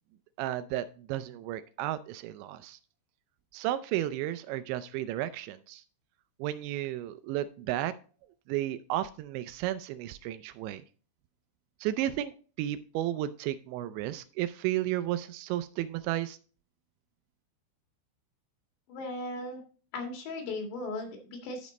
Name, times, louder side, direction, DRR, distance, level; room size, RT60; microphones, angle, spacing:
voice 1, 0.4-2.8 3.5-5.8 6.4-7.9 8.5-10.8 11.8-16.4, right 13 dB, 85° right, 13 dB, 2.8 m, -33 dB
voice 2, 18.9-19.6 19.9-21.7, left 2 dB, 70° left, 2 dB, 4.1 m, -37 dB
12.0 x 5.2 x 4.0 m, 0.39 s
omnidirectional pair, 5.3 m